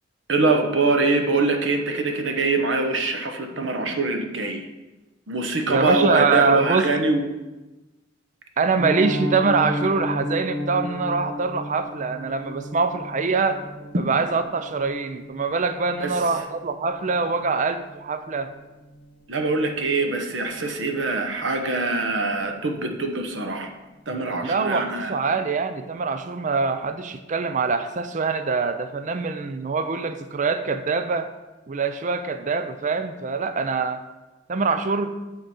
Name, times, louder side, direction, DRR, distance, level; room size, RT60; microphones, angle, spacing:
voice 1, 0.3-4.7 5.3-7.3 13.9-14.0 16.0-16.1 19.3-23.7 24.1-25.1, right 3 dB, 85° right, 5 dB, 1.1 m, -23 dB
voice 2, 5.7-6.9 8.6-13.6 13.9-18.5 24.4-31.3 31.7-34.0 34.5-35.1, right 4 dB, 40° right, 10 dB, 0.4 m, -24 dB
Piano, 8.8-19.7 19.9-20.1 20.5-20.6 21.0-21.2 21.5-21.6, equal, 25° left, 1.8 m, -34 dB
9.0 x 3.8 x 7.1 m, 1.1 s
head